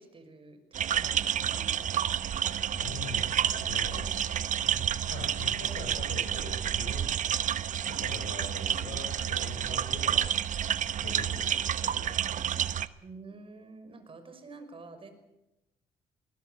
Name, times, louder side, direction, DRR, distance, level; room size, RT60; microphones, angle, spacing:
voice 1, 0.0-1.8 13.0-15.1, right 3 dB, 35° right, 8 dB, 5.8 m, -48 dB
sound 1, 0.7-12.9, right 9 dB, 55° right, 1.0 m, -30 dB
voice 2, 2.7-4.1 4.6-7.1 7.8-10.3 11.0-12.8, left 4 dB, 85° left, -1 dB, 6.7 m, -43 dB
21.0 x 20.0 x 9.4 m, 0.91 s
cardioid pair, 90°, 16 cm